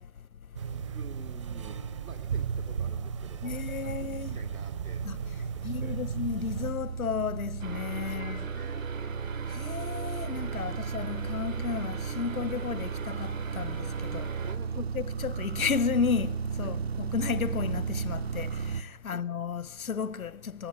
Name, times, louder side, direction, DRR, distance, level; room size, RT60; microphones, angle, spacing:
voice 1, 0.0-0.8 3.4-4.4 5.0-5.2 5.6-8.5 9.4-14.4 14.9-20.7, left 6 dB, 90° left, 1.0 m, -33 dB
sound 1, 0.5-6.7, right 7 dB, 20° right, 0.8 m, -37 dB
voice 2, 0.6-5.0 5.3-6.0 8.0-8.9 14.4-14.9 16.6-16.8 19.0-19.2, right 5 dB, 85° right, 3.1 m, -50 dB
sound 2, 2.3-18.8, right 6 dB, 50° right, 0.9 m, -35 dB
sound 3, 7.6-14.6, right 5 dB, 70° right, 3.2 m, -42 dB
25.0 x 17.0 x 9.7 m
hypercardioid pair, 160°, 41 cm